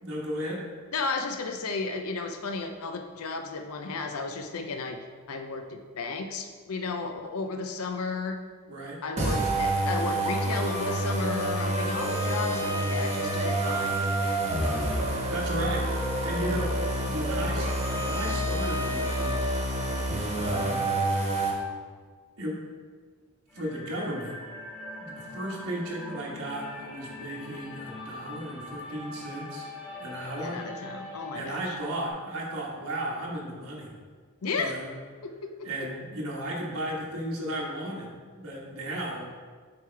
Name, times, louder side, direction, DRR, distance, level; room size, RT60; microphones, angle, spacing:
voice 1, 0.0-0.7 8.7-9.0 14.6-16.8 17.0-17.7 17.9-19.4 20.3-20.9 22.4-22.6 23.5-24.4 25.0-29.7 30.0-30.6 31.3-33.9 34.5-34.9 35.6-38.1 38.4-39.3, right 1 dB, 70° right, -3 dB, 1.3 m, -35 dB
voice 2, 0.9-5.0 5.3-8.4 9.0-14.0 30.4-31.8 34.4-34.8 35.2-35.7, left 4 dB, 75° left, 5 dB, 0.5 m, -33 dB
sound 1, 9.2-21.5, right 1 dB, 30° right, 1.2 m, -28 dB
sound 2, 23.5-32.1, left 2 dB, 15° left, 1.5 m, -42 dB
7.9 x 4.9 x 3.3 m, 1.6 s
head